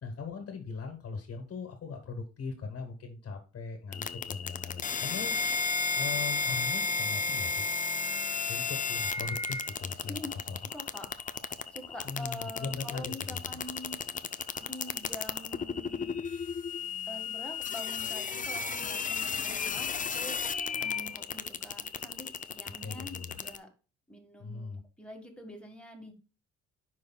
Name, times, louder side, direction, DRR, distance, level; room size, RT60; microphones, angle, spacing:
voice 1, 0.0-5.3 5.9-7.7 8.5-10.6 12.0-13.6 22.8-23.4 24.4-24.8, left 4 dB, 50° left, 5 dB, 1.5 m, -40 dB
sound 1, 3.9-23.6, left 5 dB, 25° left, 0.5 m, -33 dB
voice 2, 10.7-11.1 11.7-14.0 14.6-16.6 17.1-20.4 20.8-23.7 24.1-26.1, left 1 dB, 5° left, 2 dB, 1.8 m, -45 dB
10.0 x 4.8 x 2.3 m, 0.35 s
cardioid pair, 90°, 30 cm